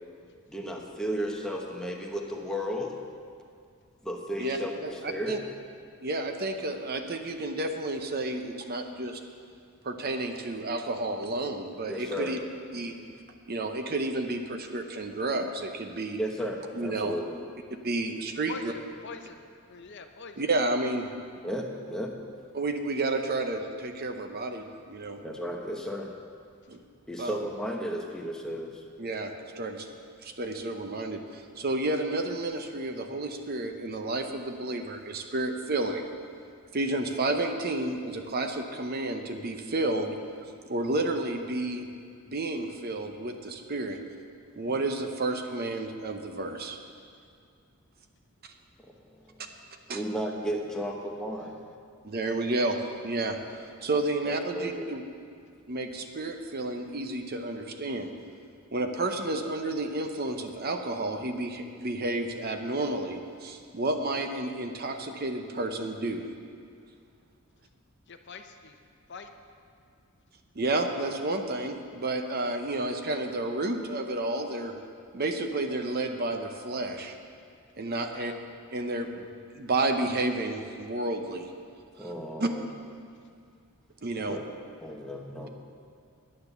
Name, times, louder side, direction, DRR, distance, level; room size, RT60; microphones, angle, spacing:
voice 1, 0.5-2.9 4.0-5.4 11.9-12.4 12.7-12.9 16.2-17.4 21.4-22.1 25.2-26.1 27.1-28.8 44.7-44.8 49.9-51.5 53.8-53.9 54.2-54.9 82.0-82.7 84.2-84.5 84.8-85.5, equal, 5° left, 0 dB, 1.0 m, -34 dB
voice 2, 4.8-5.4 6.0-9.2 9.8-12.4 12.7-12.9 13.5-16.2 16.7-17.2 17.8-18.7 20.4-21.1 22.5-25.2 26.7-26.8 27.2-27.4 29.0-29.9 30.2-36.1 36.7-40.1 40.7-41.9 42.3-44.0 44.5-46.8 49.9-50.0 52.0-52.8 53.0-53.4 53.8-55.0 55.7-58.1 58.7-66.3 70.6-74.7 75.1-77.1 77.8-78.3 78.7-79.3 79.5-81.5 82.0-82.1 82.4-82.5 84.0-84.4, right 2 dB, 45° right, 5 dB, 0.7 m, -31 dB
voice 3, 18.5-19.4 19.7-20.4 68.1-68.8 69.1-69.3 78.1-78.4, left 4 dB, 50° left, 6 dB, 0.7 m, -44 dB
9.7 x 9.4 x 6.9 m, 2.3 s
head